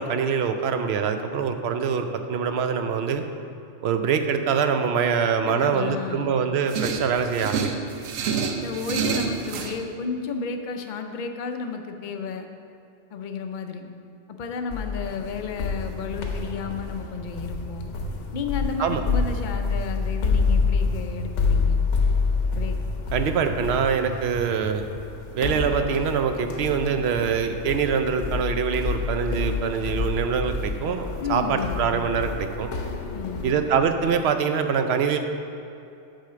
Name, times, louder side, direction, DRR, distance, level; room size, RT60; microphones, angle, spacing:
voice 1, 0.0-3.2 3.8-7.7 18.8-19.0 23.1-24.9 25.3-32.7 33.4-35.2, right 6 dB, 65° right, 7 dB, 0.7 m, -24 dB
voice 2, 5.5-6.4 8.6-12.5 13.1-13.9 14.3-17.9 18.3-21.8 22.5-22.8 31.2-32.0 33.1-33.6, left 5 dB, 55° left, 5 dB, 0.6 m, -32 dB
sound 1, 6.7-9.8, right 6 dB, 85° right, 1.0 m, -28 dB
sound 2, 14.7-34.2, left 4 dB, 70° left, 1.1 m, -28 dB
sound 3, 16.3-24.7, right 4 dB, 35° right, 2.1 m, -36 dB
6.4 x 5.0 x 6.6 m, 2.7 s
omnidirectional pair, 1.3 m